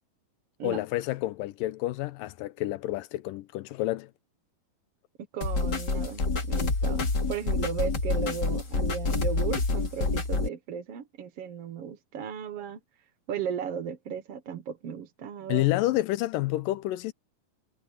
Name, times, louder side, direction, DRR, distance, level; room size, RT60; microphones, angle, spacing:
voice 1, 0.6-4.1 15.5-17.1, left 16 dB, 80° left, 2.3 m, -29 dB
voice 2, 5.3-12.8 13.3-15.7, right 7 dB, 55° right, 1.8 m, -35 dB
sound 1, 5.4-10.5, left 3 dB, 30° left, 3.0 m, -27 dB
omnidirectional pair, 4.2 m